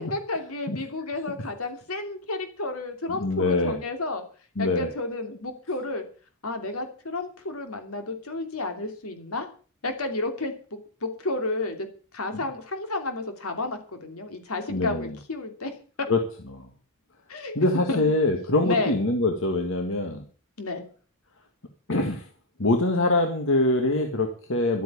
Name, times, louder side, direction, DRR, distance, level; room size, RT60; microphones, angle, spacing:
voice 1, 0.0-4.2 4.6-6.0 6.4-9.5 9.8-10.5 11.0-11.9 12.1-15.7 17.3-17.6 17.9-18.0 18.6-19.0 20.6-20.8, left 2 dB, 85° left, 6 dB, 2.8 m, -31 dB
voice 2, 3.1-3.8 4.6-4.9 14.7-15.2 16.1-16.2 16.5-16.7 17.6-20.2 21.9-22.3 22.6-24.8, left 2 dB, 65° left, 4 dB, 1.8 m, -24 dB
12.5 x 8.5 x 8.5 m, 0.41 s
head